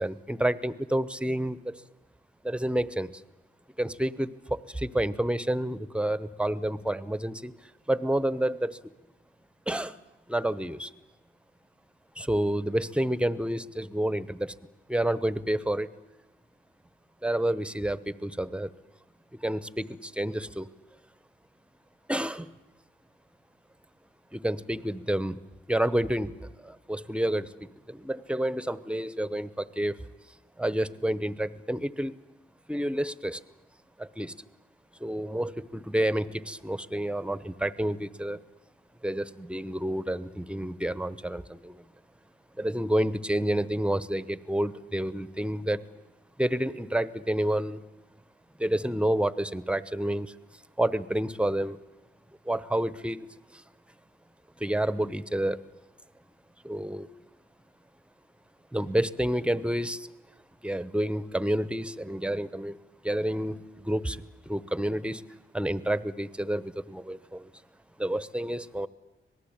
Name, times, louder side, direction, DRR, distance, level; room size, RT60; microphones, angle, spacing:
voice 1, 0.0-1.8 2.4-3.1 3.8-7.5 7.9-8.8 9.7-10.0 10.3-10.9 12.2-14.6 14.9-15.9 17.2-18.7 19.4-20.7 22.1-22.5 24.3-25.4 25.7-30.0 30.6-32.1 32.7-33.4 34.0-34.3 35.0-38.4 39.0-41.8 42.6-45.8 46.4-47.8 48.6-50.3 50.8-51.8 52.5-53.6 54.6-55.6 56.6-57.1 58.7-60.1 60.6-62.8 63.0-65.2 65.5-67.5 68.0-68.9, right 1 dB, 5° right, 16 dB, 1.0 m, -29 dB
26.0 x 19.0 x 8.9 m, 1.0 s
cardioid pair, 85°, 21 cm